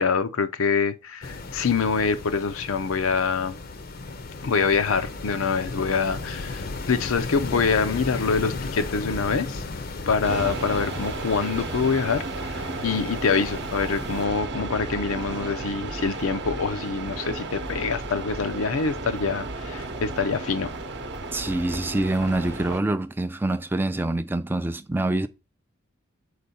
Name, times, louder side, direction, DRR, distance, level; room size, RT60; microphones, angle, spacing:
voice 1, 0.0-3.6 4.4-9.6 10.1-20.7, left 5 dB, 85° left, 0.6 m, -25 dB
sound 1, 1.2-14.3, left 3 dB, 45° left, 0.6 m, -35 dB
sound 2, 10.2-22.8, right 2 dB, 55° right, 0.8 m, -33 dB
voice 2, 21.3-25.3, right 2 dB, 10° right, 0.3 m, -25 dB
6.6 x 4.6 x 4.2 m
head